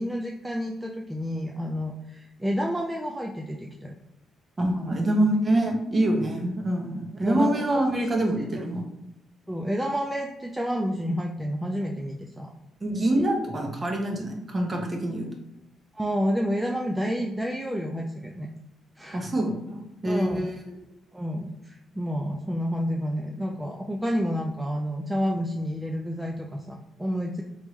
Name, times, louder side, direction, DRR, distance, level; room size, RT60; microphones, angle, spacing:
voice 1, 0.0-3.9 7.2-7.7 7.9-8.4 9.5-12.5 15.9-18.5 19.0-19.2 20.1-20.5 21.1-27.4, equal, 10° right, 1 dB, 0.4 m, -29 dB
voice 2, 4.6-8.8 12.8-15.3 19.1-20.5, right 1 dB, 30° right, 1 dB, 0.9 m, -25 dB
3.5 x 3.0 x 3.1 m, 0.88 s
cardioid pair, 90°, 0 cm